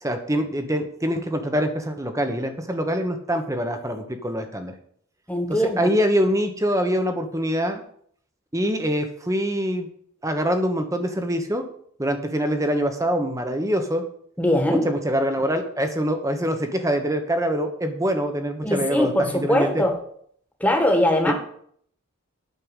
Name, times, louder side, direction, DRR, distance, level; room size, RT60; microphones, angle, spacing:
voice 1, 0.0-4.7 5.5-7.8 8.5-9.9 10.2-11.6 12.0-14.0 14.7-19.8 21.3-21.4, equal, 15° right, 6 dB, 1.2 m, -24 dB
voice 2, 5.3-5.9 14.4-14.9 18.6-20.0 20.6-21.3, left 1 dB, 5° left, 3 dB, 1.7 m, -21 dB
9.3 x 6.7 x 8.2 m, 0.64 s
head